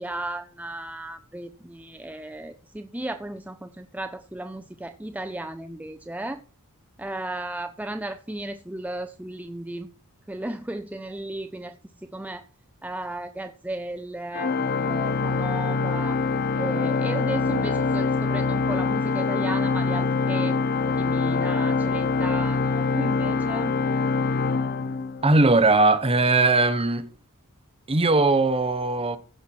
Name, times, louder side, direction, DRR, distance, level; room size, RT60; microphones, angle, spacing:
voice 1, 0.0-6.4 7.0-9.9 10.3-12.4 12.8-14.5 14.9-16.2 16.6-20.6 20.9-23.8, right 1 dB, 5° right, 0.5 m, -34 dB
Organ, 14.3-25.5, left 4 dB, 45° left, 0.6 m, -24 dB
voice 2, 25.2-27.1 27.9-29.2, right 3 dB, 25° right, 1.0 m, -19 dB
15.5 x 5.9 x 4.5 m
head